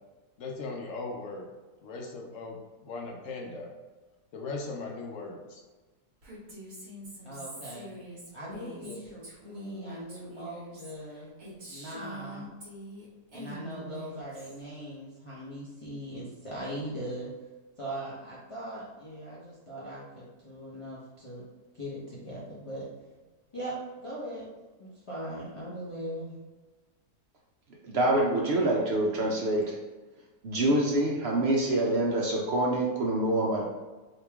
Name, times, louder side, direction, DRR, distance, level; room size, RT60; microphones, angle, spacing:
voice 1, 0.4-1.5 1.8-3.7 4.3-5.6 8.8-9.0, left 3 dB, 65° left, 0 dB, 0.8 m, -38 dB
Female speech woman speaking, 6.2-13.1 13.3-14.6, right 1 dB, 45° right, 1.3 m, -45 dB
voice 2, 7.2-8.0 8.3-11.3 11.7-12.5 13.3-17.3 17.8-21.4 21.8-22.8 23.5-24.5 24.8-26.4, right 1 dB, 45° left, -8 dB, 0.4 m, -40 dB
voice 3, 27.8-29.8 30.4-33.7, right 1 dB, 70° right, -3 dB, 0.6 m, -26 dB
3.0 x 2.8 x 3.4 m, 1.2 s
omnidirectional pair, 1.7 m